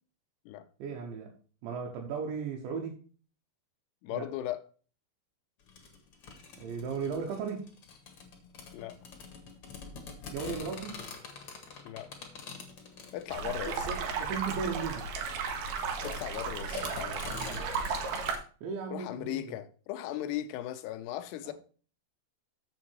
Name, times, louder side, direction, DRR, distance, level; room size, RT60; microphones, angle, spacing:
voice 1, 0.8-1.3 1.6-3.0 4.1-4.3 6.6-7.7 10.3-11.0 13.4-15.1 18.6-19.4 21.4-21.5, right 5 dB, 85° right, 3.5 m, -36 dB
voice 2, 4.0-4.6 8.7-9.0 11.8-12.1 13.1-13.9 16.0-17.7 18.9-21.5, left 13 dB, 80° left, 2.7 m, -38 dB
sound 1, 5.7-18.4, left 5 dB, 50° left, 1.7 m, -46 dB
sound 2, 13.3-18.3, right 5 dB, 70° right, 2.9 m, -34 dB
7.5 x 7.3 x 4.7 m
omnidirectional pair, 5.1 m